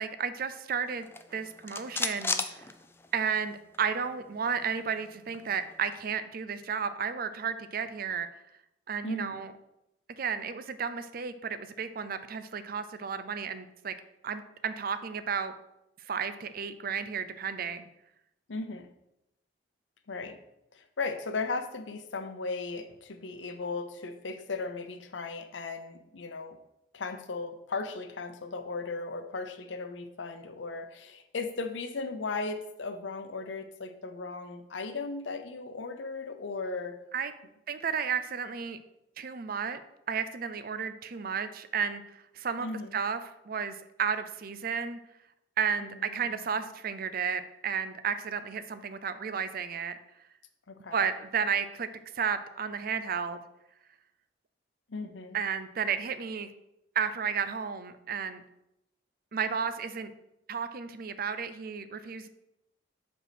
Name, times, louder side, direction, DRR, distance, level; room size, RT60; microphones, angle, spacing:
voice 1, 0.0-2.7 3.1-8.3 8.9-9.5 10.2-13.9 14.2-15.5 16.0-17.9 37.1-37.3 37.7-38.8 39.2-39.8 40.1-42.7 42.9-45.0 45.6-50.0 50.9-51.9 52.1-53.4 55.3-56.5 57.0-58.4 59.3-60.1 60.5-62.3, right 6 dB, 50° right, 12 dB, 0.5 m, -33 dB
sound 1, 1.0-3.4 3.7-3.8 4.1-6.0, left 4 dB, 15° left, 0.4 m, -36 dB
voice 2, 9.0-9.4 18.5-18.9 20.1-20.4 20.7-26.6 26.9-37.0 42.6-43.0 45.8-46.3 50.7-51.0 54.9-55.4, left 3 dB, 85° left, 8 dB, 0.7 m, -37 dB
5.5 x 4.5 x 6.0 m, 0.86 s
head